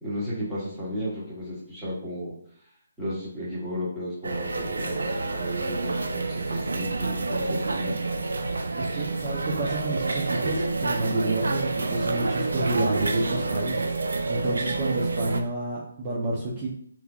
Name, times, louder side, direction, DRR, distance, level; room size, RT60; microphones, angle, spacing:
voice 1, 0.0-2.3 3.0-8.0 8.9-9.1 9.6-9.7, equal, 10° right, -10 dB, 1.5 m, -34 dB
sound 1, 4.2-15.4, right 3 dB, 75° right, 0.5 m, -28 dB
voice 2, 8.6-13.9 14.3-16.7, right 2 dB, 25° right, -6 dB, 0.8 m, -29 dB
3.3 x 3.1 x 2.4 m, 0.63 s
figure-of-eight pair, 150°, 0 cm